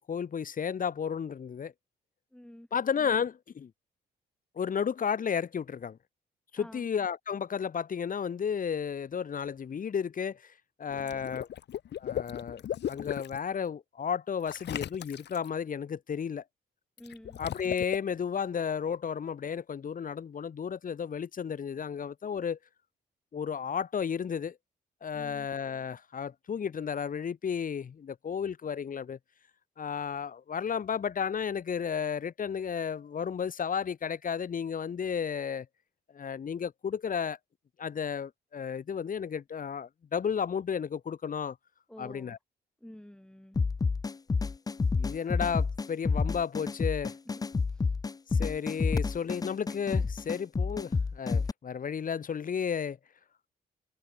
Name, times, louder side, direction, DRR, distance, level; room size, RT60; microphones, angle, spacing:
voice 1, 0.0-1.7 2.7-3.7 4.5-6.0 6.5-10.5 10.8-11.5 12.0-16.4 17.4-22.6 23.3-24.6 25.0-29.2 29.8-35.7 36.1-37.4 37.8-41.6 42.0-42.4 44.9-47.1 48.3-53.0, left 7 dB, 50° left, 1.7 m, -33 dB
voice 2, 2.3-2.7 6.6-6.9 17.0-17.4 41.9-42.4 42.8-43.6 47.7-47.9, left 1 dB, 5° left, 3.7 m, -50 dB
Water / Liquid, 10.9-13.4 14.5-15.5 17.0-18.0, left 10 dB, 70° left, 1.8 m, -37 dB
sound 1, 43.6-51.5, left 4 dB, 20° left, 0.5 m, -29 dB
cardioid pair, 75°, 18 cm